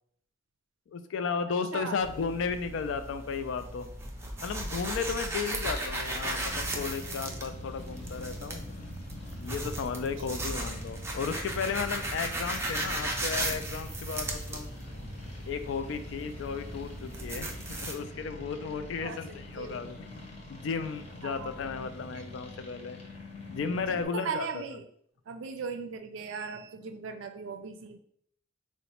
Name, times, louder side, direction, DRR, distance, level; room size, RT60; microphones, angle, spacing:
voice 1, 0.9-3.9 4.4-8.7 9.4-14.7 15.5-17.5 17.8-20.0 20.5-23.0 23.5-24.6, left 5 dB, 75° left, 10 dB, 0.3 m, -34 dB
voice 2, 1.7-2.1 10.5-10.6 19.0-19.8 21.2-21.6 22.1-22.2 23.9-24.8 25.3-28.0, right 5 dB, 90° right, 7 dB, 0.4 m, -38 dB
sound 1, 2.0-17.9, right 1 dB, 15° right, 0.4 m, -36 dB
sound 2, 6.4-24.0, left 1 dB, 35° left, 0.7 m, -44 dB
3.8 x 2.1 x 2.9 m, 0.65 s
head